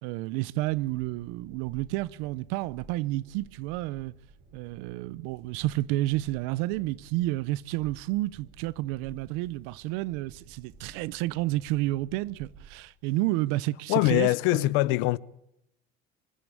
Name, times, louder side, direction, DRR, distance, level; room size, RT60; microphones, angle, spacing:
voice 1, 0.0-4.1 4.5-14.7, right 17 dB, 80° right, 0.7 m, -30 dB
Train, 0.6-12.8, right 4 dB, 60° right, 3.3 m, -54 dB
voice 2, 13.9-15.2, left 19 dB, 75° left, 0.7 m, -23 dB
25.5 x 12.5 x 8.4 m
cardioid pair, 130°, 20 cm